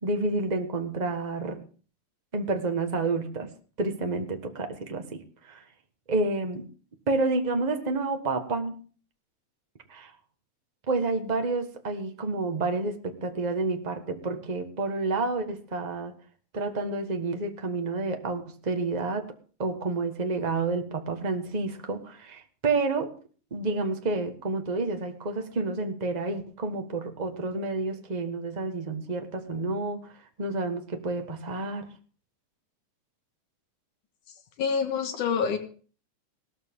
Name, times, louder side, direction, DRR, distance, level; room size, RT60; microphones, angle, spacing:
voice 1, 0.0-1.6 2.3-3.5 3.8-5.6 6.1-6.7 7.1-8.8 9.9-10.1 10.9-16.1 16.5-19.3 19.6-23.1 23.5-30.1 30.4-31.9, right 3 dB, 40° right, 5 dB, 0.6 m, -29 dB
voice 2, 34.6-35.6, left 6 dB, 85° left, 6 dB, 3.2 m, -26 dB
18.0 x 13.5 x 3.7 m, 0.41 s
omnidirectional pair, 3.4 m